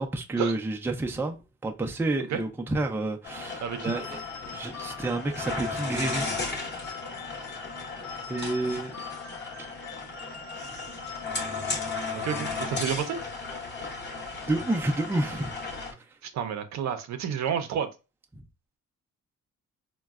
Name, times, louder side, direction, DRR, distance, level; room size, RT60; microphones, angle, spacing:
voice 1, 0.0-1.4 1.6-4.2 4.5-6.3 8.3-8.9 14.5-15.5, right 2 dB, 5° right, 0.4 m, -29 dB
sound 1, 3.2-15.9, left 3 dB, 35° left, 0.9 m, -35 dB
voice 2, 3.6-3.9 12.1-13.2 16.2-17.9, right 8 dB, 65° right, 0.6 m, -30 dB
sound 2, 3.8-12.9, left 6 dB, 60° left, 1.0 m, -45 dB
3.8 x 2.2 x 2.3 m
cardioid pair, 90°, 30 cm